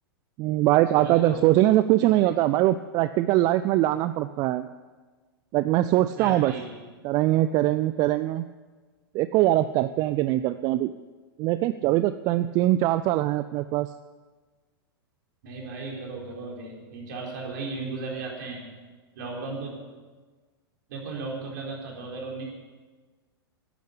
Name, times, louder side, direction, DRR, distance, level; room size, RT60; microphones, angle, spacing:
voice 1, 0.4-4.7 5.5-6.5 7.0-8.4 9.1-10.9 11.4-13.9, right 15 dB, 30° right, 13 dB, 0.4 m, -22 dB
voice 2, 0.9-1.4 2.0-2.2 6.2-6.7 15.4-18.7 19.2-19.7 20.9-22.4, right 3 dB, 50° right, -1 dB, 4.0 m, -35 dB
11.0 x 10.5 x 8.4 m, 1.4 s
figure-of-eight pair, 100°, 13 cm